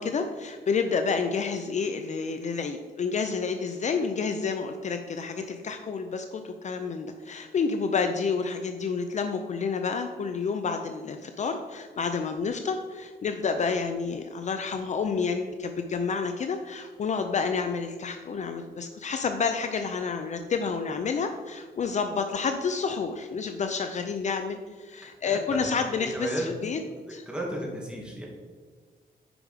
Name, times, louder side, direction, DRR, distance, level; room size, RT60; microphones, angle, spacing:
voice 1, 0.0-26.8 27.1-27.3, left 5 dB, 45° left, 7 dB, 0.6 m, -29 dB
voice 2, 26.1-26.4 27.3-28.2, right 1 dB, 5° right, -3 dB, 2.2 m, -32 dB
9.9 x 5.1 x 4.9 m, 1.5 s
wide cardioid pair, 130°, 16 cm